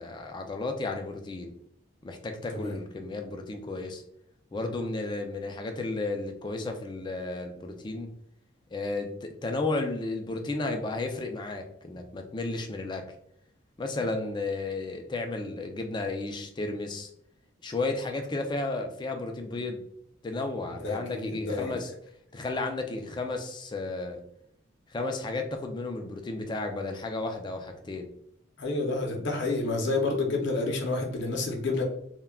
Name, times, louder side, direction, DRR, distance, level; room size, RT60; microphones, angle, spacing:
voice 1, 0.0-1.5 2.0-4.0 4.5-8.1 8.7-13.1 13.8-17.1 17.6-19.9 20.2-21.9 22.3-24.2 24.9-28.1, left 2 dB, 20° left, 4 dB, 0.3 m, -33 dB
voice 2, 20.8-21.7 28.6-31.8, left 3 dB, 55° left, 1 dB, 0.6 m, -29 dB
2.2 x 2.2 x 3.4 m, 0.73 s
head